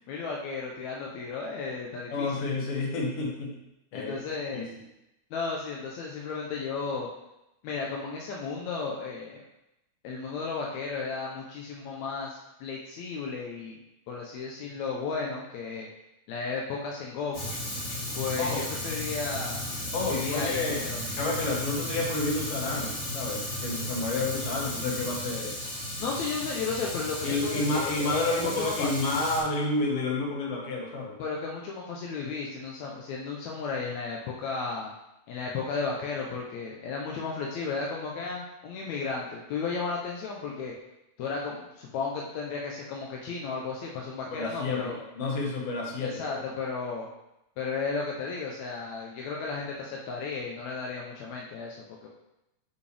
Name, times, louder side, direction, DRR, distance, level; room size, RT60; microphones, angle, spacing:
voice 1, 0.0-2.5 3.9-4.7 5.3-7.1 7.6-9.4 10.0-13.8 14.1-15.9 16.3-17.6 18.1-19.6 20.1-21.0 26.0-29.1 31.2-34.9 35.3-40.7 41.2-45.0 46.0-47.1 47.6-52.1, left 4 dB, 80° left, -2 dB, 1.6 m, -34 dB
voice 2, 2.1-3.6 3.9-4.1 4.5-4.7 18.4-18.6 19.9-20.8 21.2-25.5 27.2-31.1 44.3-46.3, left 2 dB, 55° left, -1 dB, 1.8 m, -30 dB
Fire, 17.3-29.4, left 1 dB, 20° left, 2.6 m, -34 dB
7.0 x 5.5 x 3.4 m, 0.88 s
omnidirectional pair, 4.2 m